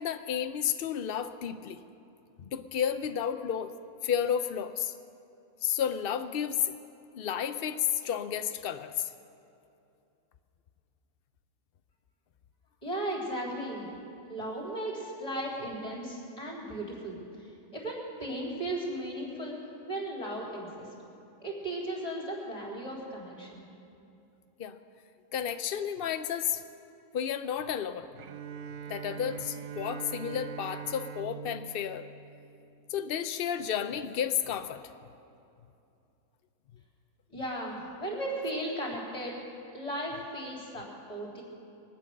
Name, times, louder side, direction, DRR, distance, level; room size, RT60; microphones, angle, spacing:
voice 1, 0.0-1.8 2.4-3.7 4.0-4.9 5.6-6.7 7.1-9.1 24.6-24.8 25.3-26.6 27.1-28.1 28.9-32.0 32.9-34.8, left 9 dB, 75° left, 9 dB, 0.5 m, -32 dB
voice 2, 12.8-13.9 14.2-20.9 21.4-23.6 37.3-39.4 39.7-41.4, right 1 dB, 25° left, -3 dB, 3.7 m, -36 dB
Bowed string instrument, 28.2-33.1, right 7 dB, 65° right, 0.9 m, -42 dB
23.0 x 9.1 x 6.4 m, 2.7 s
omnidirectional pair, 1.7 m